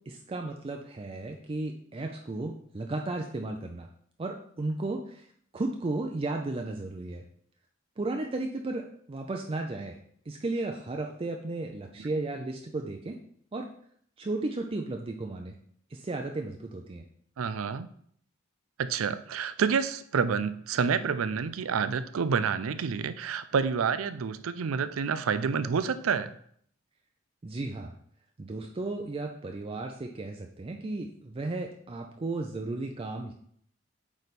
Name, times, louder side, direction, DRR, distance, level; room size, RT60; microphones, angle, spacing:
voice 1, 0.1-3.9 4.2-5.3 5.5-7.2 8.0-10.0 10.3-13.2 13.5-13.7 14.2-15.6 15.9-17.1 27.4-27.9 28.4-33.3, right 2 dB, 30° right, 3 dB, 0.4 m, -34 dB
voice 2, 17.4-17.9 18.8-26.3, right 6 dB, 90° right, 13 dB, 0.4 m, -28 dB
8.3 x 3.4 x 4.1 m, 0.64 s
head